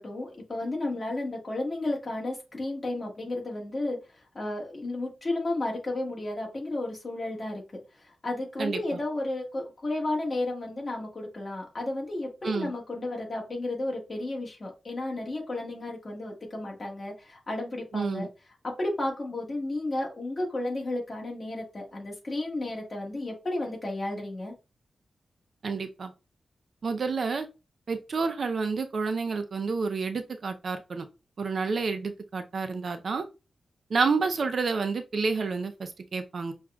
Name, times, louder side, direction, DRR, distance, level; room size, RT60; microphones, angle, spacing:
voice 1, 0.0-4.0 4.3-7.6 8.2-18.3 18.6-24.5, left 2 dB, 35° left, 1.4 m, -32 dB
voice 2, 8.6-9.0 12.4-12.7 17.9-18.3 25.6-26.1 26.8-27.5 27.9-31.1 31.4-33.2 33.9-36.5, right 4 dB, 55° right, 0.4 m, -29 dB
6.1 x 2.3 x 2.2 m
wide cardioid pair, 145°, 0 cm